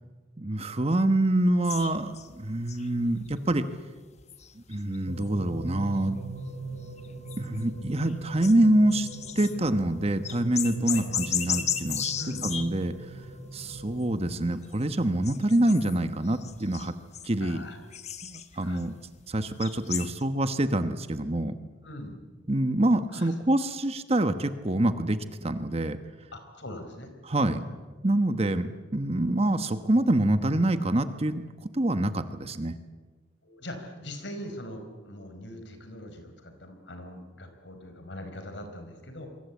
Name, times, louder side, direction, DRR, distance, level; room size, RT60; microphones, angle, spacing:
voice 1, 0.4-3.7 4.7-6.2 7.4-9.1 9.3-12.1 12.4-12.9 13.5-16.9 17.2-17.7 18.2-18.9 19.3-21.5 22.5-26.0 27.2-27.6 28.0-32.7, right 1 dB, 30° right, 10 dB, 1.2 m, -26 dB
sound 1, 1.6-3.5 4.2-5.3 5.6-5.9 6.4-6.5 7.0-7.8 8.1-9.8 10.2-13.0 13.7-14.3 14.6-14.8 15.2-16.0 16.2-18.9 19.3-20.2, left 9 dB, 35° left, 1.3 m, -35 dB
sound 2, 5.1-14.1, right 2 dB, 70° right, 6.1 m, -41 dB
voice 2, 12.2-12.5 17.4-17.8 18.6-18.8 21.8-22.1 23.1-23.3 26.3-27.1 27.4-27.6 33.4-39.3, left 1 dB, 65° left, 7 dB, 4.6 m, -41 dB
27.5 x 22.5 x 8.4 m, 1.4 s
head